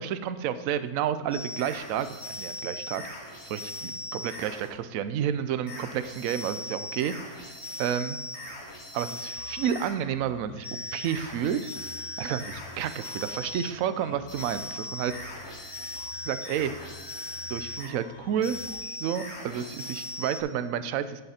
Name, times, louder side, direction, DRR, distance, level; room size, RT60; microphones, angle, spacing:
voice 1, 0.0-3.0 3.4-7.1 7.4-8.2 8.9-10.7 10.9-11.6 12.2-15.3 16.2-16.7 17.5-18.6 19.0-21.2, right 9 dB, 65° right, 12 dB, 0.9 m, -30 dB
sound 1, 1.3-4.7 5.7-9.9 10.6-13.8 14.3-17.9 18.4-20.4, left 1 dB, 40° left, 2.9 m, -39 dB
sound 2, 9.4-19.0, left 9 dB, 70° left, 0.9 m, -50 dB
11.5 x 8.2 x 4.3 m, 1.2 s
omnidirectional pair, 1.7 m